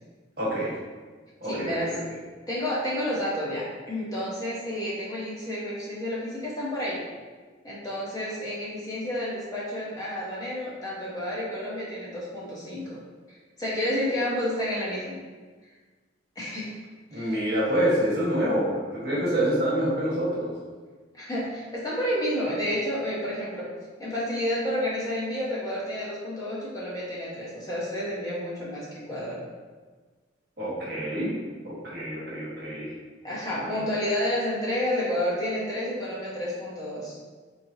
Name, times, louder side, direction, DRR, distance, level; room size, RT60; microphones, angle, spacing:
voice 1, 0.4-0.8 1.4-2.0 17.1-20.5 30.6-31.3 31.6-32.9 33.6-33.8, equal, 55° right, -7 dB, 1.3 m, -27 dB
voice 2, 1.5-1.9 2.5-7.0 7.6-13.0 13.3-15.2 16.4-16.8 17.1-17.4 21.1-23.7 24.0-29.4 33.2-37.2, left 1 dB, 20° left, -7 dB, 0.7 m, -30 dB
4.1 x 3.1 x 2.7 m, 1.4 s
head